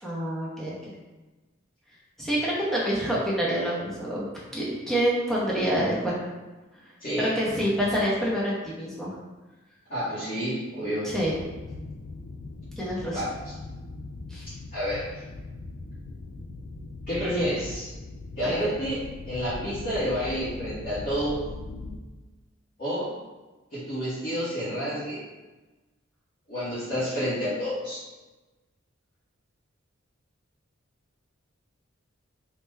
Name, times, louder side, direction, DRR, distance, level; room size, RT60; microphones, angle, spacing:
voice 1, 0.0-0.7 2.2-4.3 4.5-6.3 7.2-9.1 11.0-11.4 12.8-13.2 14.3-14.5 18.4-18.5, equal, ahead, -7 dB, 0.7 m, -27 dB
voice 2, 7.0-7.4 9.9-11.1 13.1-13.3 14.7-15.1 17.1-17.9 18.4-21.4 22.8-23.1 23.7-25.2 26.5-28.0, equal, 45° left, -11 dB, 0.9 m, -29 dB
sound 1, 11.2-22.0, left 2 dB, 60° left, 0.3 m, -40 dB
3.2 x 2.1 x 3.3 m, 1.2 s
head